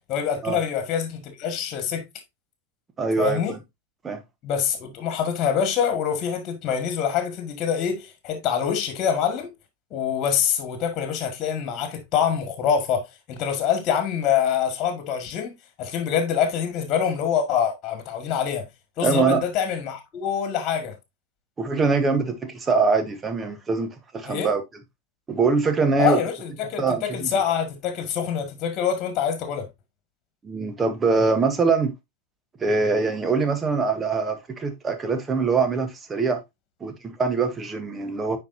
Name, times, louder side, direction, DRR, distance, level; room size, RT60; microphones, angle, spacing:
voice 1, 0.1-2.1 3.2-3.5 4.4-9.5 9.9-15.5 15.8-18.7 19.0-20.9 24.3-24.5 26.0-29.7 38.3-38.4, left 8 dB, 35° left, 1.8 m, -25 dB
voice 2, 3.0-3.6 4.0-4.2 19.0-19.4 21.6-24.6 25.3-26.2 26.8-27.3 30.4-31.9 32.6-36.4 36.8-38.4, right 4 dB, 20° right, 1.1 m, -23 dB
9.5 x 4.4 x 2.7 m
figure-of-eight pair, 90°, 0 cm